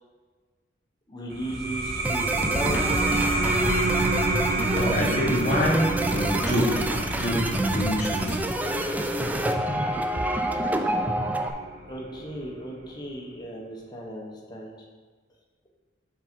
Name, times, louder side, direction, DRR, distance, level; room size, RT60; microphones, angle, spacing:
voice 1, 1.1-3.2 11.9-14.7, right 1 dB, 25° left, -2 dB, 1.0 m, -35 dB
sound 1, 1.3-12.5, right 2 dB, 55° right, 0.8 m, -28 dB
sound 2, 2.0-11.5, right 1 dB, 10° right, 0.3 m, -28 dB
voice 2, 4.8-6.9 7.1-8.4, equal, 40° left, -5 dB, 1.6 m, -26 dB
5.6 x 3.9 x 5.2 m, 1.4 s
head